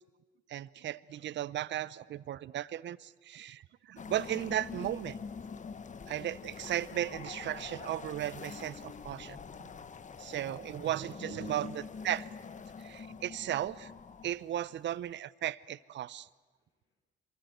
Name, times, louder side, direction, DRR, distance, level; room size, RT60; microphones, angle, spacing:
voice 1, 0.5-3.6 3.9-5.2 6.1-9.4 10.2-11.7 12.0-12.3 12.8-13.9 14.2-16.3, right 12 dB, 65° right, 19 dB, 0.7 m, -36 dB
sound 1, 4.0-15.1, left 5 dB, 40° left, 1.2 m, -45 dB
voice 2, 16.1-17.0, left 3 dB, 85° left, 0 dB, 6.5 m, -66 dB
26.5 x 23.0 x 8.0 m, 1.2 s
cardioid pair, 90°, 20 cm